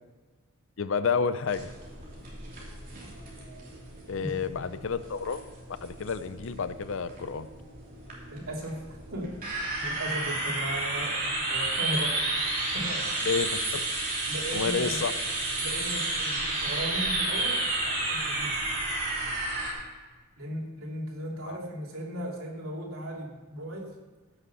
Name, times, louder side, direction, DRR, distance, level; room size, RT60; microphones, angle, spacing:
voice 1, 0.8-1.7 4.1-5.4 5.8-7.5 13.3-13.8 14.5-15.1 21.5-21.6, left 5 dB, 65° left, 13 dB, 0.6 m, -30 dB
sound 1, 1.5-19.7, right 2 dB, 45° right, 3.2 m, -32 dB
voice 2, 4.2-4.5 8.3-9.3 9.8-12.2 12.7-13.3 14.3-15.0 15.6-18.6 20.4-23.9, equal, 85° right, -2 dB, 2.9 m, -37 dB
15.5 x 6.6 x 5.7 m, 1.3 s
head